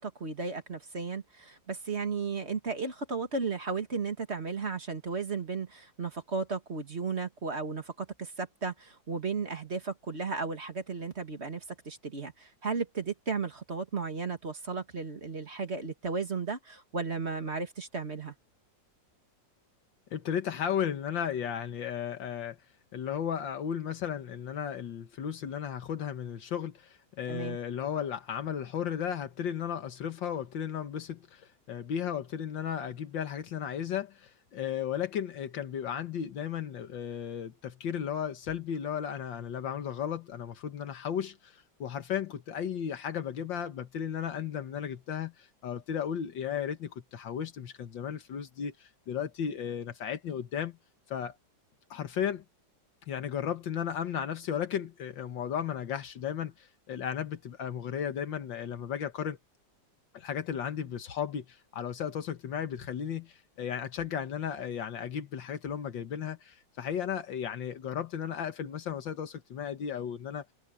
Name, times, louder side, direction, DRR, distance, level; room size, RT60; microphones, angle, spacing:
voice 1, 0.0-18.3 27.3-27.6, right 4 dB, 35° right, 2.1 m, -34 dB
voice 2, 20.1-22.6 22.9-50.8 51.1-51.4 51.9-52.4 53.1-59.4 60.1-70.5, left 8 dB, 80° left, 2.0 m, -35 dB
omnidirectional pair, 2.0 m